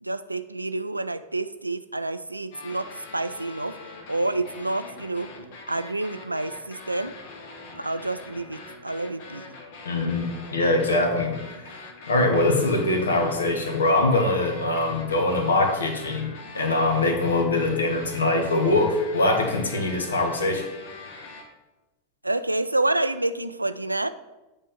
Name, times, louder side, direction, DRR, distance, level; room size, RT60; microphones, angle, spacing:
voice 1, 0.0-3.8 4.1-5.3 5.7-7.1 7.8-9.5 22.2-24.1, right 2 dB, 85° right, 12 dB, 0.3 m, -28 dB
sound 1, 2.5-21.4, left 3 dB, 50° left, 1.2 m, -43 dB
voice 2, 9.8-16.3 16.5-20.7, left 2 dB, 70° left, 4 dB, 1.3 m, -23 dB
8.5 x 3.5 x 5.6 m, 1.1 s
figure-of-eight pair, 90°, 0 cm